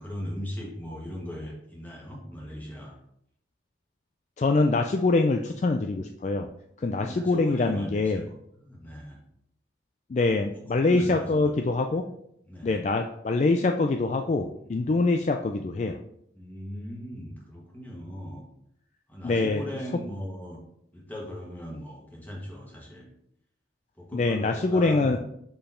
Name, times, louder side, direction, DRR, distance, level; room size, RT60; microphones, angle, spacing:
voice 1, 0.0-2.9 6.8-8.2 8.7-9.2 10.8-11.5 11.9-12.0 12.5-12.7 14.8-15.0 16.3-18.4 19.1-20.6 20.9-23.1 24.0-25.2, equal, 10° left, -3 dB, 1.5 m, -38 dB
voice 2, 4.4-6.5 6.8-8.2 10.1-12.0 12.6-16.0 19.2-19.6 24.1-25.2, left 3 dB, 40° left, 5 dB, 0.3 m, -24 dB
5.3 x 4.5 x 4.3 m, 0.75 s
head